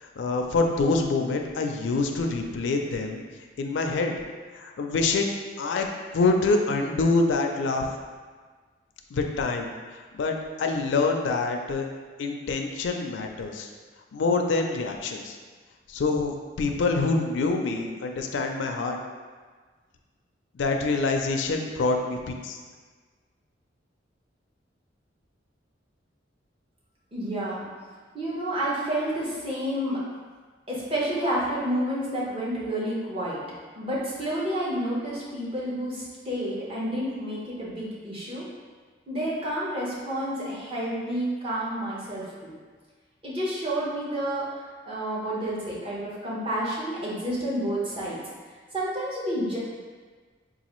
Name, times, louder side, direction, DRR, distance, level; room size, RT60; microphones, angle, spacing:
voice 1, 0.0-3.2 3.6-4.1 4.5-5.9 6.1-7.9 9.1-9.7 10.1-11.8 12.2-13.7 14.1-15.4 15.9-19.0 20.5-22.6, left 3 dB, 75° left, 3 dB, 0.4 m, -26 dB
voice 2, 27.1-27.7 28.1-30.0 30.7-33.4 33.8-38.4 39.1-42.5 43.2-44.4 44.9-48.2 48.7-49.6, right 1 dB, 30° right, -7 dB, 0.8 m, -29 dB
3.9 x 2.4 x 3.0 m, 1.5 s
head